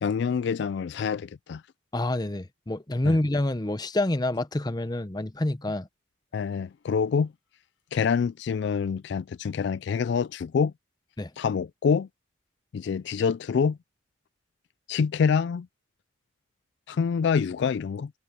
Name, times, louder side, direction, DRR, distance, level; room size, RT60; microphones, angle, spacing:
voice 1, 0.0-1.6 3.0-3.2 6.3-7.3 7.9-10.7 11.4-12.1 12.7-13.8 14.9-15.7 16.9-18.1, left 6 dB, 60° left, 0.3 m, -26 dB
voice 2, 1.9-5.9 11.2-11.3, left 1 dB, 20° left, 0.7 m, -27 dB
head